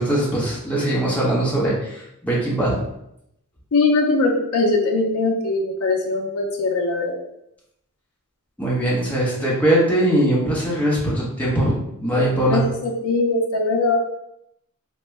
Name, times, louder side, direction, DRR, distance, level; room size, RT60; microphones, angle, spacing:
voice 1, 0.0-2.8 8.6-12.6, right 1 dB, 5° left, -6 dB, 0.9 m, -21 dB
voice 2, 3.7-7.2 12.5-14.0, left 3 dB, 70° left, 2 dB, 0.5 m, -21 dB
3.6 x 2.1 x 3.2 m, 0.79 s
head